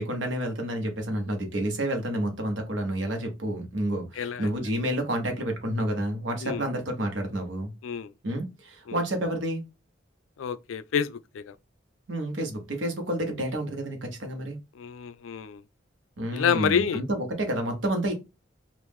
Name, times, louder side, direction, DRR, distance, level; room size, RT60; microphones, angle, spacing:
voice 1, 0.0-7.7 8.2-9.6 12.1-14.6 16.2-18.1, right 1 dB, 65° right, 1.1 m, -29 dB
voice 2, 4.2-4.5 6.4-6.6 7.8-8.1 8.9-9.0 10.4-11.5 14.8-15.6 16.3-17.0, left 7 dB, 85° left, 0.4 m, -28 dB
3.0 x 2.5 x 3.5 m
head